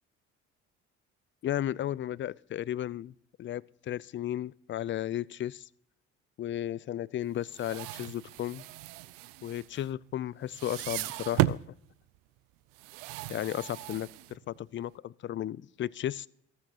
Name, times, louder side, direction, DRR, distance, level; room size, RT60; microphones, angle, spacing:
voice 1, 1.4-3.1 3.4-5.7 6.4-8.6 9.4-11.6 13.3-16.3, left 12 dB, 35° left, 0.4 m, -34 dB
sound 1, 7.4-10.2 10.5-11.7 12.7-14.6, right 16 dB, 75° right, 0.5 m, -35 dB
14.5 x 13.5 x 2.9 m
hypercardioid pair, 60°, 34 cm